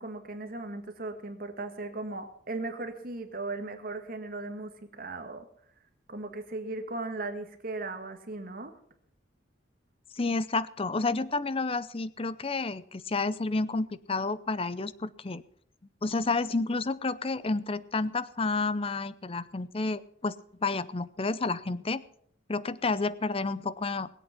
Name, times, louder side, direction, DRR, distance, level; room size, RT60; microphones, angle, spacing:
voice 1, 0.0-4.7 5.0-5.5 6.1-8.8, right 2 dB, 50° right, 7 dB, 1.7 m, -37 dB
voice 2, 10.1-15.4 16.0-20.4 20.6-22.0 22.5-24.1, left 3 dB, 30° left, 17 dB, 0.6 m, -30 dB
21.0 x 8.4 x 5.8 m, 0.63 s
head